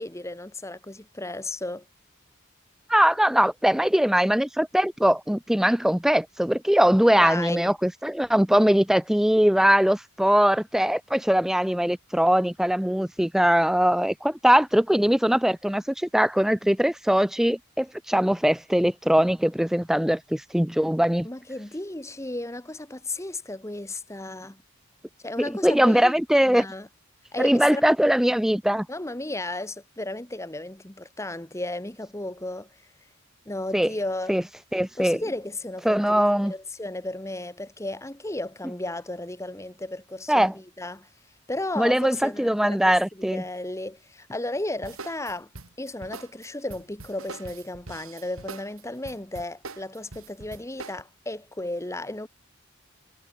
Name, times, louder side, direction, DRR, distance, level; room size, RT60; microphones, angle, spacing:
voice 1, 0.0-1.8 7.1-7.7 21.2-24.6 25.2-26.1 26.4-26.9 27.3-27.8 28.9-32.7 33.5-34.3 35.0-41.1 41.5-45.5 45.8-52.3, left 2 dB, 15° left, 1.1 m, -34 dB
voice 2, 2.9-21.3 25.4-26.7 27.4-28.9 33.7-33.9 34.3-34.4 34.7-35.2 35.8-36.5 40.3-40.5 41.8-43.4, equal, ahead, 0.3 m, -21 dB
sound 1, 44.8-51.0, right 3 dB, 75° right, 3.0 m, -42 dB
head